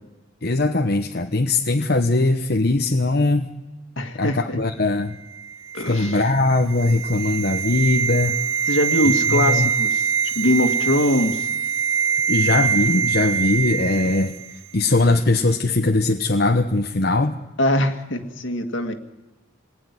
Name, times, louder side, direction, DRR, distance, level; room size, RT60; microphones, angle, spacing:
voice 1, 0.4-3.5 4.2-5.2 5.9-8.4 9.1-9.7 12.3-14.3 14.7-17.4, left 2 dB, 50° left, 4 dB, 1.0 m, -20 dB
voice 2, 4.0-4.6 5.7-6.2 8.7-10.1 10.4-11.5 12.5-12.6 17.6-18.9, left 1 dB, 65° left, 7 dB, 2.1 m, -22 dB
sound 1, 5.3-14.6 14.8-15.0, right 6 dB, 60° right, 1.2 m, -24 dB
27.5 x 20.5 x 9.8 m, 1.1 s
head